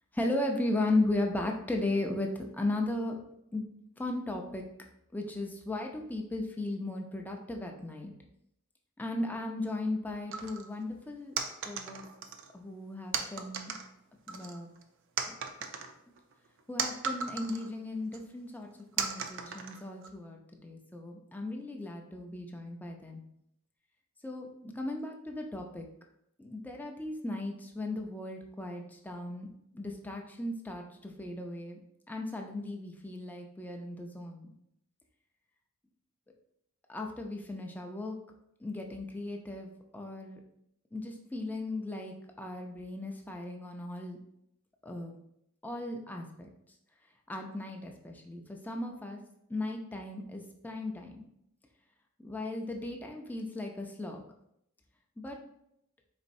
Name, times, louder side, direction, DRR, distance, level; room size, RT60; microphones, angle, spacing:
voice 1, 0.1-3.2 3.5-3.6 4.0-4.6 5.1-8.1 9.0-11.3 11.6-12.0 12.5-13.7 14.3-14.7 15.3-15.4 16.1-16.2 16.7-18.7 19.0-23.2 24.2-25.8 26.4-29.5 29.7-31.8 32.1-34.5 36.9-38.2 38.6-40.4 40.9-44.2 44.8-45.2 45.6-46.5 47.3-49.2 49.5-51.2 52.2-54.2 55.2-55.4, left 2 dB, 10° left, 2 dB, 0.4 m, -36 dB
sound 1, 10.3-10.7 11.4-12.5 13.1-13.9 14.3-14.8 15.2-17.7 18.1-18.2 19.0-20.1, right 6 dB, 60° right, 0.4 m, -36 dB
4.1 x 3.8 x 2.6 m, 0.77 s
head